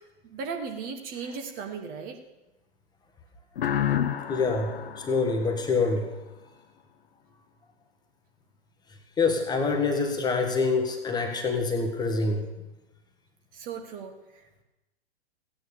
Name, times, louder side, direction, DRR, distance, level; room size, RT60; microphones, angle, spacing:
voice 1, 0.2-2.2 13.5-14.1, right 5 dB, 25° right, 5 dB, 1.3 m, -36 dB
sound 1, 3.6-6.2, left 10 dB, 60° left, 0.9 m, -30 dB
voice 2, 4.3-6.1 9.2-12.5, left 4 dB, 10° left, 4 dB, 1.3 m, -26 dB
15.5 x 9.4 x 6.7 m, 1.0 s
figure-of-eight pair, 110°, 32 cm